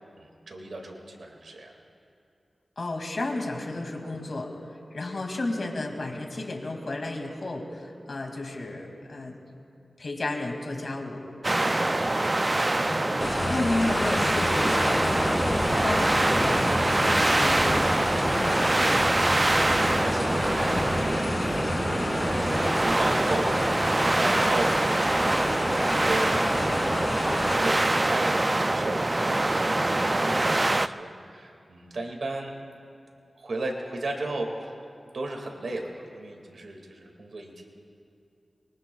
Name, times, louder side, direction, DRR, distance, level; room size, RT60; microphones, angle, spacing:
voice 1, 0.2-1.7 11.7-12.1 21.0-21.6 22.3-23.6 24.0-24.7 25.9-32.5 33.4-34.7 35.1-37.7, right 2 dB, 85° right, 1 dB, 2.0 m, -35 dB
voice 2, 2.8-4.5 4.9-9.4 10.0-11.2 12.9-17.7 18.2-19.2 24.2-24.5, left 2 dB, 65° left, 2 dB, 2.2 m, -33 dB
sound 1, 11.4-30.9, right 2 dB, 30° right, 0.3 m, -24 dB
sound 2, 13.2-27.6, left 1 dB, 45° left, 3.0 m, -30 dB
24.0 x 23.0 x 2.3 m, 2.6 s
wide cardioid pair, 65°, 0 cm